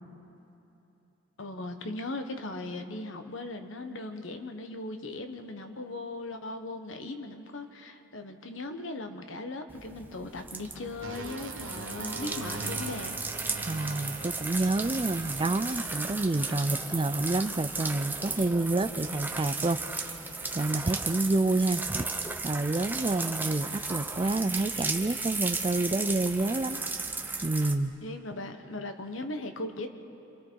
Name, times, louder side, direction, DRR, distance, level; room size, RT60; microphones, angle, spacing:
voice 1, 1.4-13.2 28.0-29.9, left 2 dB, 85° left, 6 dB, 1.3 m, -38 dB
sound 1, 9.7-27.7, right 3 dB, 10° right, 0.9 m, -35 dB
sound 2, 11.0-17.0 17.8-18.0, right 3 dB, 80° right, 1.0 m, -42 dB
voice 2, 13.6-20.1 20.5-22.1 22.4-26.8 27.4-27.9, right 2 dB, 25° right, 13 dB, 0.5 m, -28 dB
27.0 x 26.5 x 4.7 m, 3.0 s
head